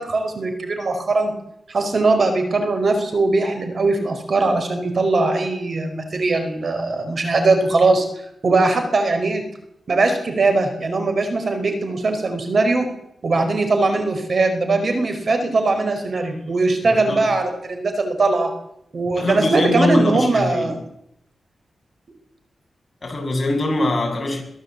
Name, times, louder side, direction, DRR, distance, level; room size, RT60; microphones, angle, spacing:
voice 1, 0.0-1.3 1.7-8.0 8.4-9.4 9.9-12.9 13.2-18.5 18.9-20.8, right 3 dB, 55° right, 4.9 m, -20 dB
voice 2, 16.9-17.3 19.2-20.8 23.0-24.4, left 2 dB, 30° left, 8.0 m, -22 dB
23.0 x 16.5 x 8.4 m
wide cardioid pair, 100°, 0 cm